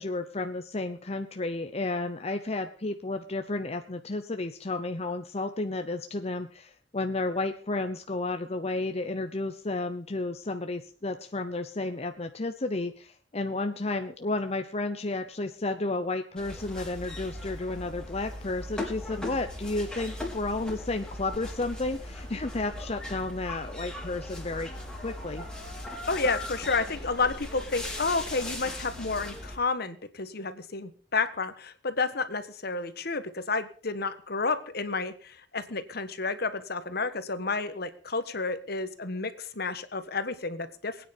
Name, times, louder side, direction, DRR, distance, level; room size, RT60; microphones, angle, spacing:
voice 1, 0.0-24.7 25.0-25.4, left 2 dB, 35° left, 7 dB, 0.9 m, -32 dB
sound 1, 16.4-29.6, left 1 dB, 5° left, 3.9 m, -39 dB
voice 2, 26.1-41.1, left 4 dB, 60° left, 11 dB, 1.4 m, -31 dB
21.0 x 9.5 x 5.3 m, 0.42 s
head